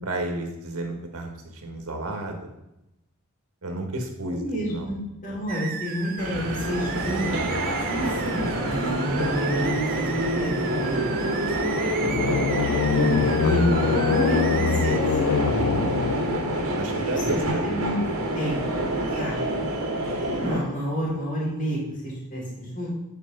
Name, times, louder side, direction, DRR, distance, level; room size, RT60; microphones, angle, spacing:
voice 1, 0.0-2.5 3.6-4.4 4.7-4.9 15.5-16.0 16.8-17.6, right 2 dB, 90° right, 3 dB, 1.6 m, -31 dB
voice 2, 4.2-7.3 7.9-11.0 12.9-15.0 17.0-18.0 18.3-18.6 19.2-19.5 20.3-22.9, equal, 35° left, -5 dB, 2.5 m, -29 dB
sound 1, 5.5-15.0, right 7 dB, 40° right, 0.6 m, -35 dB
sound 2, 6.2-20.6, right 1 dB, 70° right, 2.0 m, -27 dB
sound 3, 12.0-16.7, left 6 dB, 65° left, 0.3 m, -24 dB
9.2 x 4.4 x 5.4 m, 0.91 s
head